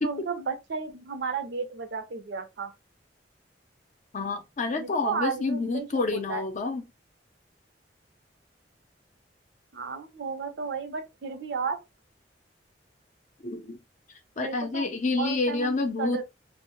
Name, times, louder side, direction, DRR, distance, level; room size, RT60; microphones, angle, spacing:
voice 1, 0.0-2.7 4.7-5.9 6.1-6.4 9.7-11.8 14.4-14.9 15.2-15.7 16.0-16.2, right 5 dB, 65° right, 0.5 m, -33 dB
voice 2, 4.1-6.9 13.4-13.8 14.4-16.2, left 3 dB, 45° left, 0.5 m, -28 dB
2.1 x 2.0 x 2.9 m
head